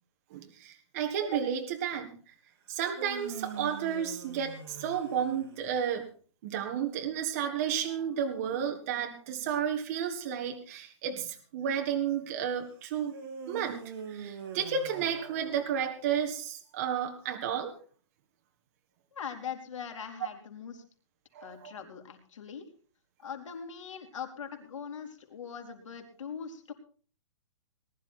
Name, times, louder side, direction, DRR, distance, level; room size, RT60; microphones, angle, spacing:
voice 1, 0.3-2.1 2.7-6.0 6.4-13.2 13.5-13.8 14.1-17.7 21.3-21.8, right 8 dB, 30° right, 4 dB, 1.6 m, -32 dB
sound 1, 2.7-5.9 13.1-16.0, right 6 dB, 45° right, 3.2 m, -44 dB
voice 2, 19.1-20.8 21.4-22.7 23.2-26.7, left 7 dB, 90° left, 4 dB, 4.0 m, -41 dB
20.0 x 11.5 x 4.3 m, 0.41 s
hypercardioid pair, 175°, 16 cm